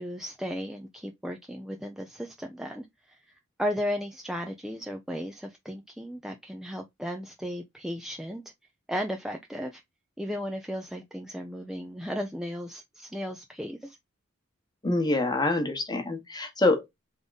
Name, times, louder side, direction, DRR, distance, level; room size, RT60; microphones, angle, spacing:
voice 1, 0.0-8.4 8.9-9.8 10.2-14.0, equal, ahead, 0.5 m, -35 dB
voice 2, 14.8-16.9, left 2 dB, 20° left, 1.1 m, -26 dB
3.7 x 3.6 x 3.9 m
head